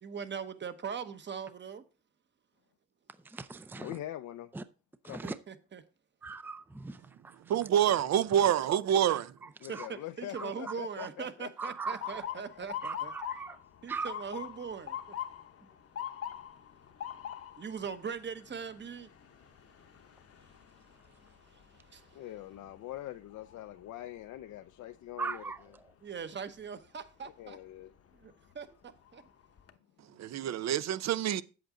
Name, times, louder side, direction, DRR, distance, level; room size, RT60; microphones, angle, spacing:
voice 1, 0.0-1.8 5.2-5.8 9.7-13.1 13.8-15.2 17.6-19.1 20.4-20.5 21.1-22.2 26.0-27.6 28.2-29.2, right 6 dB, 35° right, 1.1 m, -41 dB
voice 2, 3.3-3.9 4.5-4.6 5.0-5.4 6.2-7.0 7.2-7.4 9.7-9.9 10.4-10.5 11.0-11.1 11.6-12.2 12.8-13.6 13.9-14.1 25.2-25.6, right 4 dB, 5° right, 0.5 m, -39 dB
voice 3, 3.8-4.5 5.0-5.3 9.6-12.7 22.1-25.7 27.4-27.9, left 13 dB, 75° left, 0.5 m, -44 dB
voice 4, 7.5-9.3 30.2-31.4, right 10 dB, 60° right, 0.6 m, -27 dB
Motor vehicle (road) / Siren, 12.0-23.9 24.3-24.8 25.6-25.9 27.7-28.0 28.5-28.6 29.0-29.7, left 10 dB, 50° left, 0.9 m, -44 dB
8.0 x 7.8 x 3.8 m
cardioid pair, 90°, 30 cm